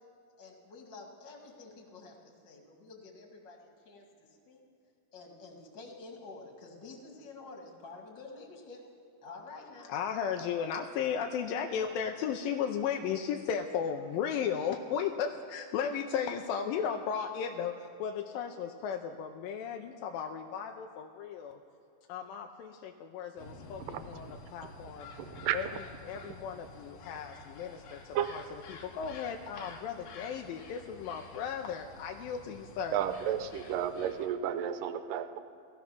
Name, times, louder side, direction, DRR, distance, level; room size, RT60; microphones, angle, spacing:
voice 1, 0.4-4.0 4.5-4.6 5.1-8.8 9.2-9.9, left 3 dB, 40° left, 1 dB, 2.3 m, -49 dB
voice 2, 9.9-21.6 22.1-25.1 25.5-28.4 28.7-33.0, left 7 dB, 85° left, 4 dB, 2.3 m, -35 dB
sound 1, 23.4-34.4, left 3 dB, 60° left, 1.9 m, -50 dB
voice 3, 25.2-25.6 28.1-28.3 32.9-35.4, right 10 dB, 80° right, 10 dB, 2.3 m, -32 dB
17.0 x 14.0 x 5.9 m, 2.6 s
omnidirectional pair, 4.1 m